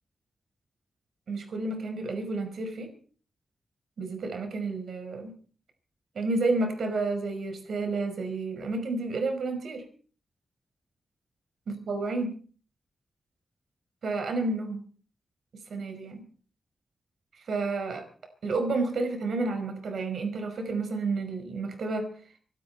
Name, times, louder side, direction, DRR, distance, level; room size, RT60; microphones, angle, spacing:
voice 1, 1.3-2.9 4.0-5.3 6.1-9.8 11.7-12.4 14.0-14.8 15.7-16.2 17.5-18.0 18.4-22.1, right 3 dB, 75° right, 7 dB, 5.2 m, -30 dB
24.5 x 12.5 x 4.5 m, 0.42 s
wide cardioid pair, 95°, 0 cm